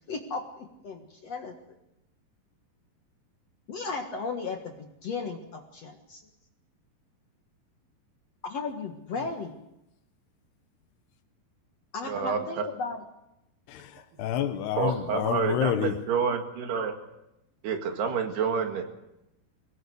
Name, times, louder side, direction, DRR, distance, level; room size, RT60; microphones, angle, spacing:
voice 1, 0.1-1.5 3.7-6.2 8.4-9.6 11.9-13.0 14.9-15.0, left 4 dB, 55° left, 2.0 m, -35 dB
voice 2, 12.0-12.5 14.2-14.3 14.8-16.9 17.6-18.8, right 6 dB, 70° right, 4.0 m, -28 dB
voice 3, 13.7-16.0, left 10 dB, 75° left, 3.1 m, -29 dB
23.5 x 18.5 x 8.0 m
omnidirectional pair, 4.8 m